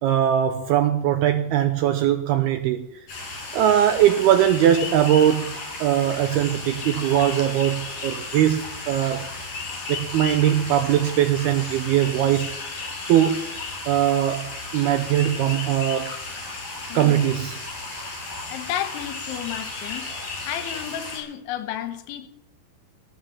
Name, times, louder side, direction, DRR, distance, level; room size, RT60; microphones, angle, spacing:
voice 1, 0.0-2.9 3.5-9.3 9.9-12.6 13.1-13.4 13.9-16.1 16.9-17.6, right 11 dB, 80° right, 2.3 m, -21 dB
sound 1, 3.1-21.2, left 3 dB, 45° left, 7.8 m, -34 dB
voice 2, 18.5-20.1 20.5-22.3, left 11 dB, 80° left, 3.5 m, -32 dB
18.5 x 10.5 x 7.4 m
omnidirectional pair, 5.4 m